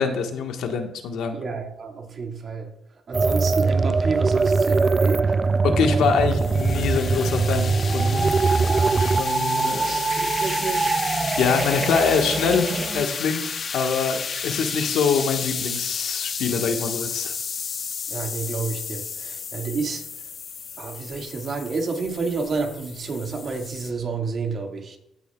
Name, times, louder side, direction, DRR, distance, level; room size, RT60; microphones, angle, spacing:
voice 1, 0.0-1.4 5.8-8.3 9.0-9.9 11.4-17.3, left 5 dB, 80° left, 1.2 m, -24 dB
voice 2, 1.3-2.7 3.1-5.3 8.5-9.0 9.6-11.0 18.1-20.0 20.8-25.0, right 4 dB, 50° right, 1.7 m, -30 dB
sound 1, 3.1-13.0, right 4 dB, 30° right, 0.3 m, -22 dB
sound 2, 5.7-23.9, left 6 dB, 50° left, 0.8 m, -32 dB
15.5 x 6.9 x 2.3 m
cardioid pair, 90°, 0 cm